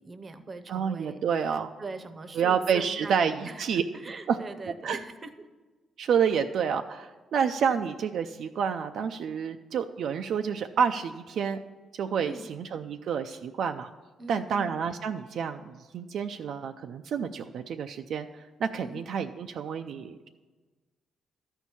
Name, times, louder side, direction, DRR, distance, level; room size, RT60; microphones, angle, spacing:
voice 1, 0.0-5.5 12.2-12.5 14.2-14.7 18.8-19.0, right 2 dB, 30° right, 10 dB, 0.8 m, -42 dB
voice 2, 0.7-1.7 2.4-3.8 4.3-4.4 4.8-5.0 6.0-11.6 11.9-13.9 14.3-20.3, right 7 dB, 65° right, 6 dB, 0.4 m, -29 dB
12.5 x 4.5 x 8.4 m, 1.3 s
cardioid pair, 115°, 0 cm